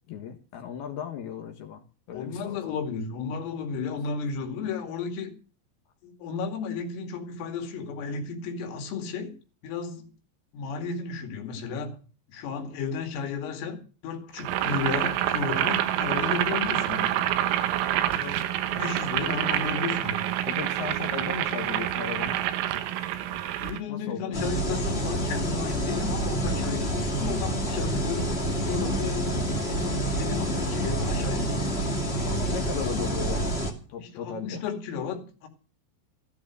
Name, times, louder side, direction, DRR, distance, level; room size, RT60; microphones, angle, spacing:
voice 1, 0.1-2.8 18.7-18.8 20.5-22.4 23.9-24.4 32.2-33.6 33.9-34.6, left 8 dB, 65° left, 2.9 m, -36 dB
voice 2, 2.1-5.3 6.0-9.4 9.6-10.0 10.5-12.0 12.3-17.0 18.1-20.3 23.3-31.7 34.0-35.5, left 5 dB, 85° left, 5.0 m, -33 dB
Boiling, 14.4-23.8, right 12 dB, 85° right, 3.8 m, -27 dB
sound 1, 24.3-33.7, right 1 dB, 30° left, 1.1 m, -28 dB
14.5 x 12.5 x 6.2 m
omnidirectional pair, 5.8 m